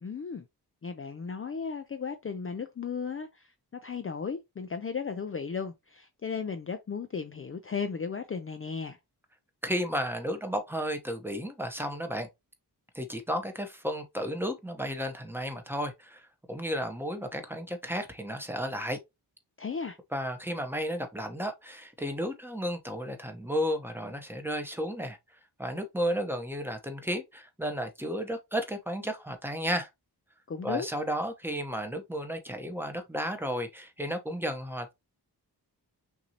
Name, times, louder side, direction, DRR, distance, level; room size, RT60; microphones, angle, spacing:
voice 1, 0.0-0.4 0.8-3.5 3.8-9.0 19.6-20.0 30.5-30.9, left 5 dB, 35° left, 0.4 m, -35 dB
voice 2, 9.6-12.3 12.9-19.0 20.1-25.2 25.6-29.9 30.6-34.9, equal, 5° right, 0.9 m, -33 dB
5.9 x 2.7 x 2.8 m
wide cardioid pair, 115°, 41 cm